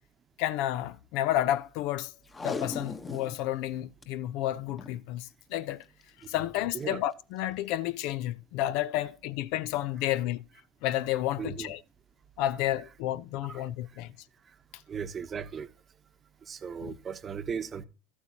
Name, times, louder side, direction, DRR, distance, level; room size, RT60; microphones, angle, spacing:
voice 1, 0.4-2.1 2.4-5.8 6.3-10.4 10.8-11.8 12.4-14.1 16.8-16.9, left 13 dB, 60° left, 0.5 m, -31 dB
Packing tape duct tape, 2.3-3.4 3.7-4.0 4.7-5.0 6.0-6.2 6.8-6.9, left 3 dB, 20° left, 1.2 m, -37 dB
voice 2, 11.4-11.7 13.5-13.7 14.9-15.7 16.5-17.8, right 6 dB, 30° right, 0.9 m, -36 dB
13.0 x 8.3 x 2.9 m
hypercardioid pair, 80°, 0 cm